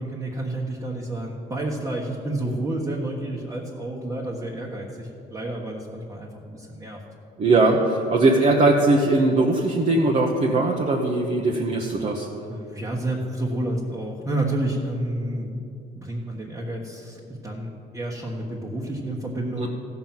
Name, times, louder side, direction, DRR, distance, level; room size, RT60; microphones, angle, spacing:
voice 1, 0.0-7.0 12.5-15.6 15.9-19.7, right 1 dB, 15° right, -3 dB, 1.4 m, -30 dB
voice 2, 7.4-12.3 19.6-19.7, right 2 dB, 40° right, -1 dB, 1.1 m, -20 dB
15.0 x 6.0 x 7.4 m, 2.6 s
cardioid pair, 110°, 17 cm